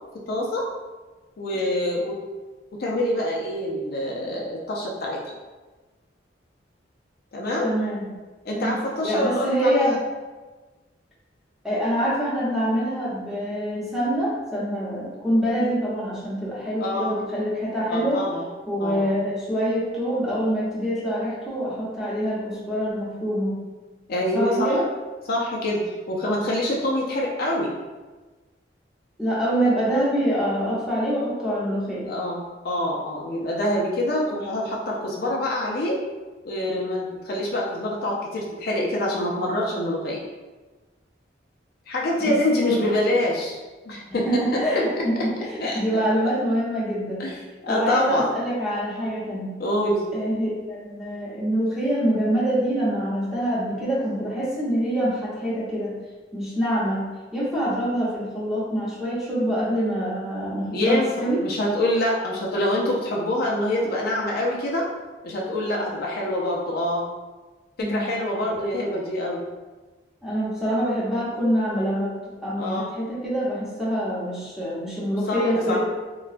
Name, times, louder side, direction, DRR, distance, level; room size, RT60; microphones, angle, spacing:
voice 1, 0.3-0.7 1.4-2.2 2.8-5.3 7.3-7.7 8.4-10.0 16.8-17.1 17.9-18.4 18.8-19.1 24.1-24.7 25.3-25.8 26.1-27.7 32.0-36.0 36.4-40.2 41.9-43.6 43.9-44.8 45.6-46.1 47.2-48.3 49.6-50.0 60.7-61.1 61.4-64.9 65.2-67.0 67.9-69.4 72.6-72.9 75.3-75.4 75.7-75.8, left 1 dB, 55° left, -3 dB, 0.4 m, -25 dB
voice 2, 7.6-8.1 8.5-8.8 9.0-10.0 11.6-18.2 18.7-23.6 24.3-24.9 29.2-32.1 42.2-42.8 44.2-47.2 47.7-49.6 50.1-55.9 56.3-57.0 57.3-61.4 67.8-68.1 70.2-75.8, equal, ahead, -8 dB, 0.8 m, -25 dB
3.7 x 2.2 x 2.4 m, 1.2 s
head